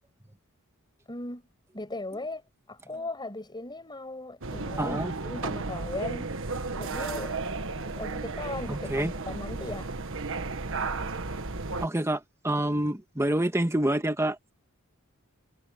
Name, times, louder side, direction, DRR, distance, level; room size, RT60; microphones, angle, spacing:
voice 1, 1.1-1.4 1.7-2.4 2.7-6.3 6.8-7.4 7.8-9.9, left 2 dB, 20° left, 6.1 m, -38 dB
sound 1, 4.4-11.9, right 3 dB, 65° right, 1.5 m, -34 dB
voice 2, 4.8-5.1 8.7-9.1 11.8-14.5, right 1 dB, 10° right, 1.5 m, -27 dB
head